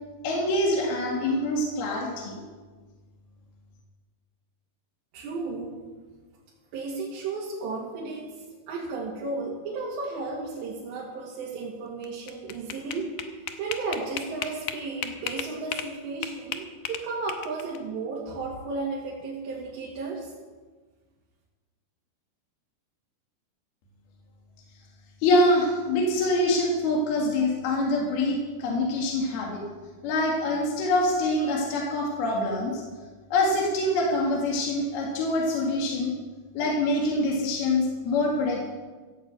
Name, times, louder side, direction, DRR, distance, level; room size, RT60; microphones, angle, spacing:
voice 1, 0.2-2.4 25.2-29.6 30.0-32.8 33.3-36.2 36.6-38.7, left 1 dB, 65° left, -1 dB, 3.6 m, -25 dB
voice 2, 5.1-5.8 6.7-13.1 13.4-20.3, right 3 dB, 85° right, -5 dB, 4.3 m, -34 dB
sound 1, 12.0-15.9 16.2-17.8, left 9 dB, 90° left, 1.7 m, -34 dB
15.0 x 8.3 x 8.1 m, 1.4 s
omnidirectional pair, 4.9 m